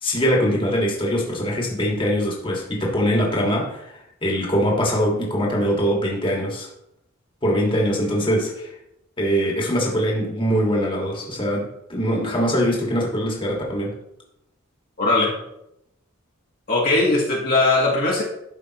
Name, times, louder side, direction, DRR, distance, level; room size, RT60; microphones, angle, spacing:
voice 1, 0.0-6.7 7.4-8.8 9.2-13.9, equal, 25° left, -2 dB, 1.7 m, -22 dB
voice 2, 15.0-15.3 16.7-18.2, left 2 dB, 45° left, -4 dB, 1.5 m, -19 dB
12.5 x 5.1 x 2.9 m, 0.83 s
head